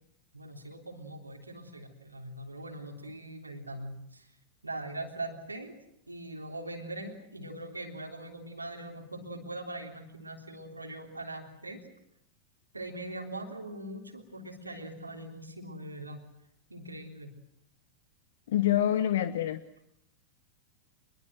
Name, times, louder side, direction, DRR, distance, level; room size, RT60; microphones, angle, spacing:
voice 1, 0.3-4.3 4.6-5.8 6.1-11.8 12.7-16.2 16.7-17.3, right 1 dB, 85° right, 2 dB, 3.5 m, -41 dB
voice 2, 18.5-19.6, left 11 dB, 60° left, 14 dB, 1.0 m, -26 dB
26.5 x 21.5 x 7.7 m, 0.75 s
figure-of-eight pair, 90°, 0 cm